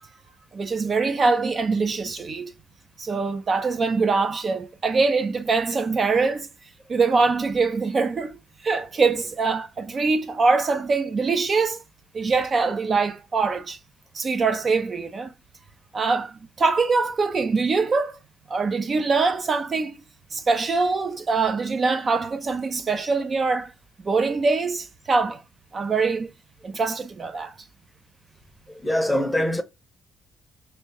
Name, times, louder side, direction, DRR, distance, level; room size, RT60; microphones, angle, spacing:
voice 1, 0.5-2.5 3.0-6.5 6.9-11.8 12.1-13.8 14.1-15.3 15.9-18.2 18.5-19.9 20.3-23.7 24.0-25.4 25.7-26.3 26.6-27.5, right 4 dB, 40° right, 0.5 m, -23 dB
voice 2, 28.7-29.6, left 1 dB, 5° left, 0.7 m, -23 dB
3.3 x 2.7 x 2.9 m
cardioid pair, 90°, 0 cm